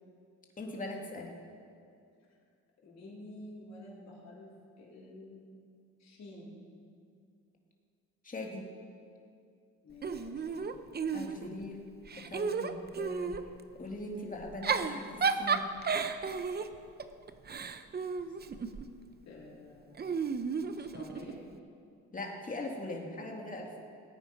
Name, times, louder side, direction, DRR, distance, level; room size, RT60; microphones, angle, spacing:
voice 1, 0.6-1.3 8.2-8.6 11.1-11.8 12.2-13.3 13.8-15.6 22.1-23.8, left 2 dB, 25° left, 0 dB, 2.3 m, -41 dB
voice 2, 2.8-5.5 6.0-6.6 9.8-10.8 11.1-11.5 18.2-18.4 19.3-20.2 20.7-21.4, left 2 dB, 60° left, -6 dB, 3.8 m, -50 dB
Giggle / Chuckle chortle, 10.0-11.6 12.1-13.5 14.4-18.9 20.0-21.4, right 5 dB, 35° right, 0.7 m, -33 dB
18.0 x 9.1 x 5.3 m, 2.4 s
cardioid pair, 90°, 30 cm